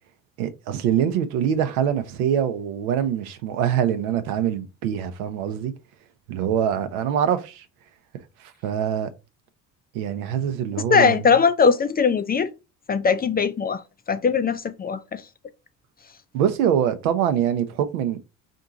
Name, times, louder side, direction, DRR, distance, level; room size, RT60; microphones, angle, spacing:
voice 1, 0.4-5.7 6.3-7.7 8.4-9.1 9.9-11.3 16.3-18.2, right 9 dB, 80° right, 0.7 m, -24 dB
voice 2, 10.9-12.5 12.9-13.8 14.1-15.2, left 5 dB, 25° left, 0.4 m, -20 dB
4.4 x 2.5 x 3.8 m
hypercardioid pair, 60°, 42 cm